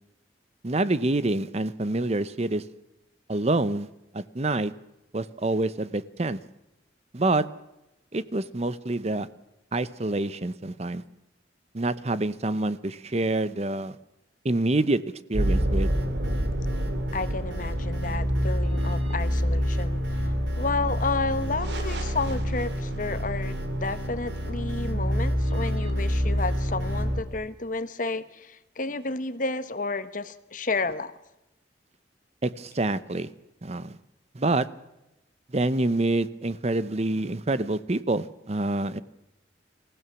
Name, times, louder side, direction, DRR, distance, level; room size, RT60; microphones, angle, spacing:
voice 1, 0.6-2.6 3.3-3.9 4.1-4.7 5.1-6.4 7.1-7.5 8.1-9.3 9.7-11.0 11.7-14.0 14.4-15.0 15.3-15.9 32.4-33.3 33.6-34.0 34.3-34.7 35.5-39.0, right 2 dB, 35° right, 0.8 m, -26 dB
sound 1, 15.3-27.2, equal, 70° right, 3.3 m, -27 dB
voice 2, 17.1-31.1, left 3 dB, 45° left, 1.2 m, -31 dB
25.0 x 16.0 x 7.0 m
head